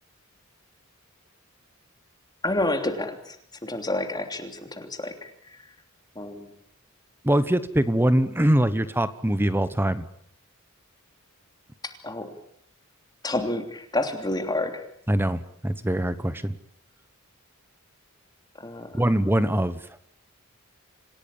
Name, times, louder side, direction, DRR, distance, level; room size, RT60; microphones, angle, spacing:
voice 1, 2.4-3.4 3.6-5.6 6.1-6.5 11.8-12.3 13.2-14.8 18.6-19.0, left 2 dB, 20° left, 6 dB, 3.0 m, -29 dB
voice 2, 7.2-10.0 15.1-16.6 18.9-19.8, right 1 dB, 10° right, 14 dB, 1.1 m, -23 dB
27.5 x 16.5 x 8.7 m, 0.68 s
head